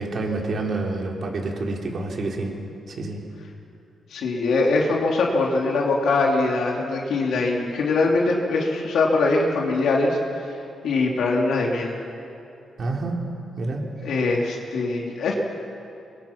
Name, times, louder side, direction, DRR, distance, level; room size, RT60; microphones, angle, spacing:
voice 1, 0.0-2.5 2.9-3.2 12.8-13.2 13.6-13.9, right 2 dB, 50° right, 0 dB, 3.8 m, -28 dB
voice 2, 4.1-10.5 10.8-12.0 14.0-15.3, left 3 dB, 75° left, -1 dB, 3.0 m, -22 dB
26.0 x 23.0 x 6.0 m, 2.7 s
cardioid pair, 130°, 0 cm